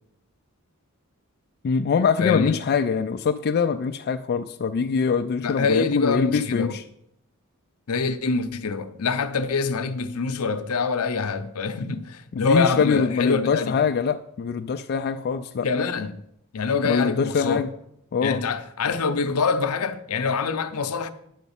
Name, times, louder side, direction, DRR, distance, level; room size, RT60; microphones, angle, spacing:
voice 1, 1.6-6.8 12.3-15.7 16.8-17.7 18.1-18.4, left 5 dB, 45° left, 0.3 m, -23 dB
voice 2, 2.2-2.6 5.4-6.8 7.9-13.7 15.6-16.2 16.5-17.6 18.2-21.1, left 4 dB, 75° left, 0.7 m, -25 dB
9.5 x 4.0 x 7.1 m
head